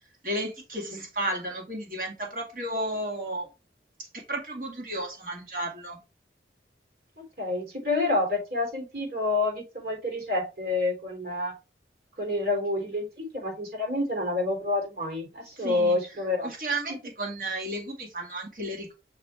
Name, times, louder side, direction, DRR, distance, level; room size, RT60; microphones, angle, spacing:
voice 1, 0.2-3.5 4.0-6.0 15.6-16.0 16.4-18.9, right 1 dB, 50° right, 2.1 m, -33 dB
voice 2, 7.4-11.5 12.2-16.5 16.9-17.0, left 2 dB, 65° right, 3.5 m, -28 dB
6.5 x 4.4 x 3.4 m
head